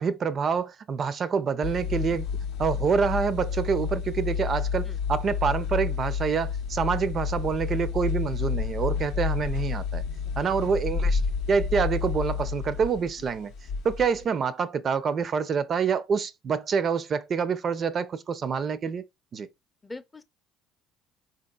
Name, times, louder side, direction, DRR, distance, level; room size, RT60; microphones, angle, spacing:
voice 1, 0.0-2.3 2.6-10.0 10.4-11.2 11.5-13.5 13.8-19.0 19.3-19.5, right 6 dB, 45° right, 0.4 m, -27 dB
sound 1, 1.6-14.2, left 6 dB, 70° left, 0.5 m, -30 dB
voice 2, 10.2-10.6 19.8-20.2, left 2 dB, 20° left, 0.4 m, -43 dB
3.7 x 2.9 x 2.2 m
hypercardioid pair, 60°, 0 cm